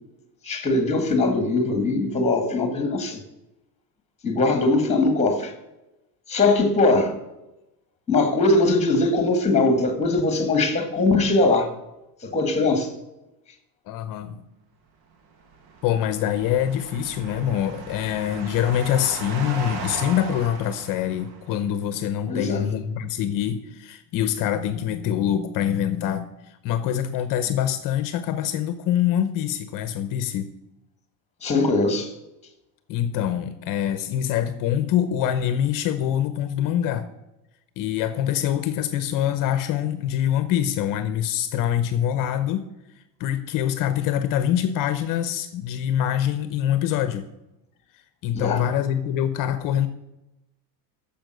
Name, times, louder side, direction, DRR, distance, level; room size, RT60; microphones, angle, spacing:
voice 1, 0.4-3.2 4.2-5.5 6.3-7.1 8.1-11.7 12.2-12.9 22.3-22.7 31.4-32.1 48.3-48.6, left 2 dB, 15° left, 7 dB, 1.7 m, -21 dB
voice 2, 13.9-14.4 15.8-30.5 32.9-37.1 37.8-42.7 43.2-47.2 48.2-49.9, left 10 dB, 45° left, 11 dB, 0.8 m, -25 dB
sound 1, 15.4-21.7, right 4 dB, 65° right, 2.0 m, -37 dB
10.5 x 7.2 x 7.7 m, 0.94 s
cardioid pair, 170°, 47 cm